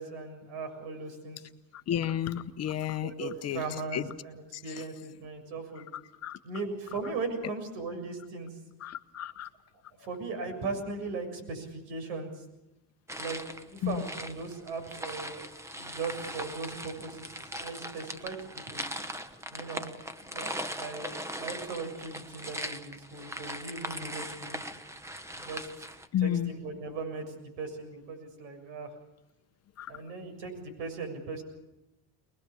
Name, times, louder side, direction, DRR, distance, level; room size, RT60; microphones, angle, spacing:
voice 1, 0.0-1.4 3.0-5.8 6.4-8.6 10.0-12.4 13.2-13.4 13.7-15.5 15.8-18.8 19.5-19.9 20.2-24.6 25.4-25.7 26.2-28.9 29.9-31.4, right 4 dB, 80° right, 6 dB, 7.1 m, -38 dB
voice 2, 1.9-3.6 3.9-4.1 4.5-4.6 6.2-6.4 8.8-9.5 13.8-14.0 26.1-26.5 29.8-29.9, left 11 dB, 40° left, 11 dB, 1.0 m, -31 dB
sound 1, 13.1-26.1, right 1 dB, 5° right, 1.2 m, -40 dB
24.0 x 21.0 x 7.1 m, 0.97 s
cardioid pair, 140°, 40 cm